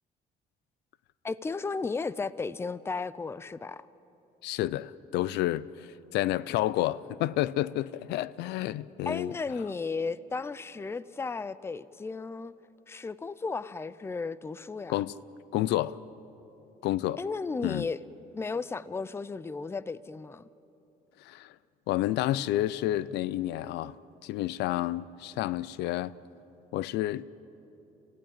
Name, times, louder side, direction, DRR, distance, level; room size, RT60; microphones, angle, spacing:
voice 1, 1.2-3.9 9.1-12.5 12.9-15.0 17.2-18.0 18.3-20.5, left 4 dB, 15° left, 0.5 m, -34 dB
voice 2, 4.4-5.6 6.1-9.3 14.9-15.1 15.5-16.0 16.8-17.2 17.6-17.9 21.3-21.5 21.9-23.9 24.2-26.1 26.7-27.2, left 14 dB, 80° left, 0.5 m, -29 dB
27.5 x 15.5 x 8.8 m
cardioid pair, 110°, 17 cm